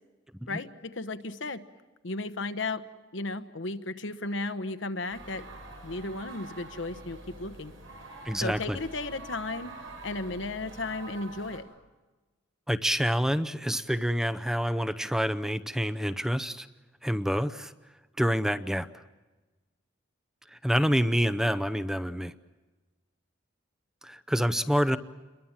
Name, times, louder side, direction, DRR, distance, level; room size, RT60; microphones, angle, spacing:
voice 1, 0.5-1.6 2.0-2.8 3.1-5.4 5.8-7.7 8.4-11.7, left 2 dB, 70° left, 12 dB, 1.2 m, -34 dB
sound 1, 5.1-11.6, right 2 dB, 90° right, 7.9 m, -45 dB
voice 2, 8.2-8.8 12.7-16.7 17.0-17.7 18.2-18.9 20.5-22.3 24.0-25.0, equal, 5° right, 13 dB, 0.7 m, -27 dB
29.0 x 22.5 x 7.4 m, 1.2 s
head